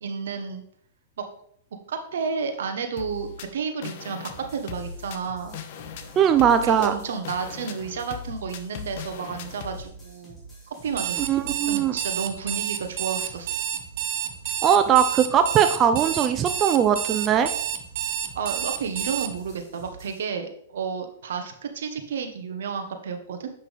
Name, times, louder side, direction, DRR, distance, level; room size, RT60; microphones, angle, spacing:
voice 1, 0.0-0.6 1.2-1.3 1.9-5.6 6.6-10.4 10.7-11.3 11.7-13.6 18.3-23.5, right 6 dB, 80° right, 6 dB, 1.4 m, -31 dB
sound 1, 3.0-9.8, left 7 dB, 55° left, 0.9 m, -39 dB
sound 2, 4.2-20.2, right 3 dB, 10° left, 2.5 m, -47 dB
voice 2, 6.2-6.9 11.3-11.9 14.6-17.5, right 8 dB, 25° right, 8 dB, 0.5 m, -20 dB
Alarm, 10.9-19.3, right 10 dB, 55° right, 0.9 m, -29 dB
8.2 x 5.9 x 3.6 m, 0.66 s
hypercardioid pair, 140°, 0 cm